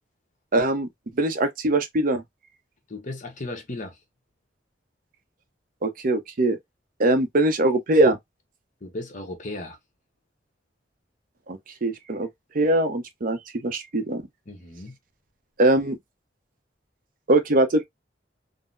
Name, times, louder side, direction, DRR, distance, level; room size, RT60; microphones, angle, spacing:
voice 1, 0.5-0.9 1.2-2.2 5.8-6.6 7.0-8.2 11.5-12.3 12.5-14.2 15.6-16.0 17.3-17.8, right 2 dB, 50° right, 0.6 m, -22 dB
voice 2, 2.9-4.0 8.8-9.8 14.5-15.0, left 2 dB, 45° left, 0.9 m, -35 dB
3.7 x 2.0 x 2.5 m
head